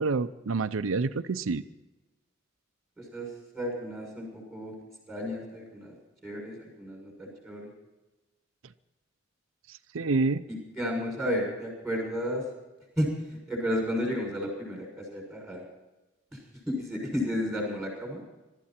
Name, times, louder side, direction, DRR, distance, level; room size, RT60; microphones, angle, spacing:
voice 1, 0.0-1.6 9.7-10.4, right 3 dB, 85° right, 10 dB, 0.6 m, -28 dB
voice 2, 3.0-3.3 3.5-4.7 5.1-5.9 6.2-7.7 10.5-12.4 13.0-15.6 16.3-16.4 16.7-18.2, equal, ahead, 0 dB, 6.4 m, -32 dB
22.5 x 13.0 x 4.3 m, 1.1 s
head